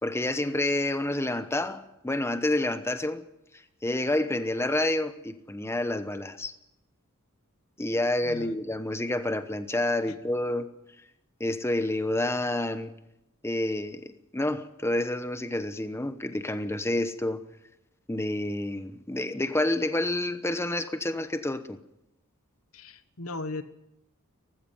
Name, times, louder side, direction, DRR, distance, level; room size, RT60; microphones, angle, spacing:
voice 1, 0.0-3.2 3.8-6.5 7.8-10.7 11.4-12.9 13.4-14.0 14.3-17.4 18.1-21.8, left 1 dB, 10° left, 1.0 m, -28 dB
voice 2, 22.7-23.6, left 2 dB, 70° left, 1.3 m, -37 dB
18.0 x 15.5 x 9.3 m
head